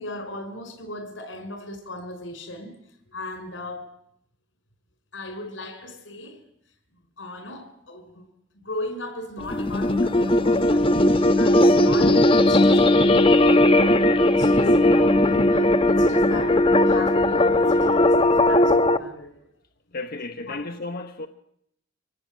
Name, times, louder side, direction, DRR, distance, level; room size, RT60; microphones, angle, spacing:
voice 1, 0.0-2.7 3.1-3.9 5.1-6.4 7.2-8.3 8.5-11.0 11.4-19.4 20.5-20.7, left 2 dB, 85° left, 5.4 m, -37 dB
sound 1, 9.4-19.0, left 1 dB, 30° left, 1.0 m, -18 dB
voice 2, 19.9-21.3, left 2 dB, 50° left, 1.0 m, -33 dB
25.0 x 18.5 x 9.0 m
head